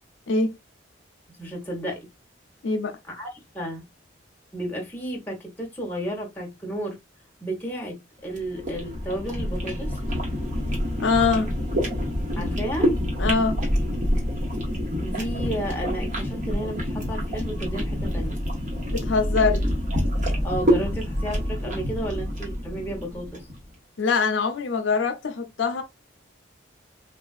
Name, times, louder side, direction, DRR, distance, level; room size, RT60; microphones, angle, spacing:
voice 1, 1.4-2.1 3.1-3.8 4.5-7.0 7.4-10.0 12.4-12.9 15.0-18.4 20.4-23.5, right 1 dB, 10° left, 0.9 m, -32 dB
voice 2, 2.6-3.0 11.0-11.5 13.2-13.6 18.9-19.6 24.0-25.8, left 4 dB, 75° left, 0.5 m, -23 dB
sound 1, 8.3-23.5, equal, 40° right, 1.1 m, -27 dB
3.4 x 2.4 x 2.3 m
head